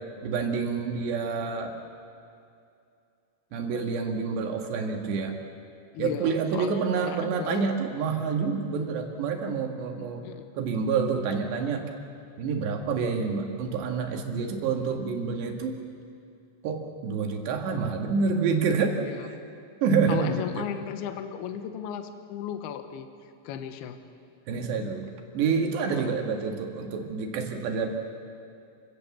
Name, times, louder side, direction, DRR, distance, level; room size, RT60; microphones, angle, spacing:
voice 1, 0.2-1.7 3.5-5.4 6.0-10.2 10.6-11.9 12.4-15.7 16.6-19.0 19.8-20.7 24.5-27.9, right 5 dB, 70° right, 3 dB, 3.8 m, -28 dB
voice 2, 5.9-7.7 10.2-10.5 19.0-19.3 20.1-24.0 25.9-26.2, left 9 dB, 70° left, 8 dB, 2.7 m, -36 dB
29.5 x 17.0 x 7.2 m, 2.5 s
omnidirectional pair, 5.5 m